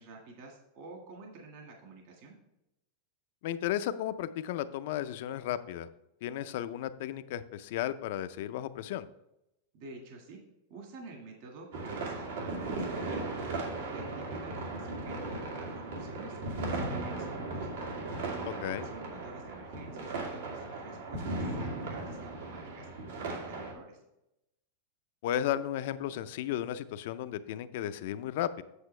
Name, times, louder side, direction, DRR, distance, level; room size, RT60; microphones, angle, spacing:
voice 1, 0.0-2.3 9.7-10.4 10.7-13.5 13.8-17.7 18.2-22.9 23.2-24.0, right 3 dB, 45° right, 1 dB, 1.7 m, -49 dB
voice 2, 3.4-5.9 6.2-9.1 18.6-18.9 25.2-28.6, left 11 dB, 55° left, 13 dB, 0.5 m, -34 dB
sound 1, 11.7-23.7, right 2 dB, 80° right, 2.2 m, -37 dB
8.1 x 7.3 x 3.2 m, 0.87 s
supercardioid pair, 170°, 0 cm